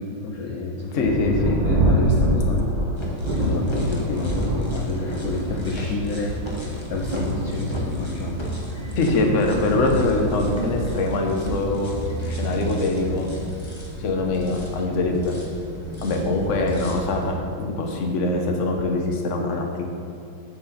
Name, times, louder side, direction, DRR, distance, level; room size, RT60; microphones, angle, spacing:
voice 1, 0.0-2.6 3.4-6.4 6.9-8.4, left 4 dB, 70° left, 0 dB, 0.9 m, -29 dB
voice 2, 0.9-1.6 9.0-13.3 14.0-15.4 16.0-19.9, left 2 dB, 50° left, 2 dB, 1.0 m, -23 dB
Thunder, 1.0-17.1 17.8-17.9 18.5-18.9, right 1 dB, 70° right, 0.4 m, -27 dB
sound 1, 3.0-17.3, right 1 dB, 25° left, 0.7 m, -34 dB
8.2 x 7.4 x 4.1 m, 2.6 s
omnidirectional pair, 2.2 m